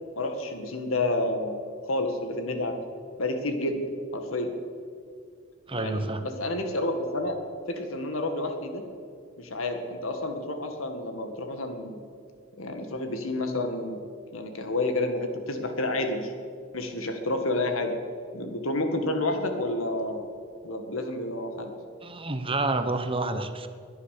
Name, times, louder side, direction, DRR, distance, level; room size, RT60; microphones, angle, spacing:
voice 1, 0.2-2.8 3.2-4.5 5.7-7.4 7.7-8.8 9.4-12.0 12.6-14.0 14.3-16.3 16.7-17.9 18.3-20.2 20.6-21.7, left 2 dB, 90° left, 5 dB, 2.0 m, -30 dB
voice 2, 5.7-6.2 22.0-23.7, right 2 dB, 25° right, 8 dB, 1.0 m, -29 dB
21.0 x 10.0 x 6.7 m, 2.3 s
head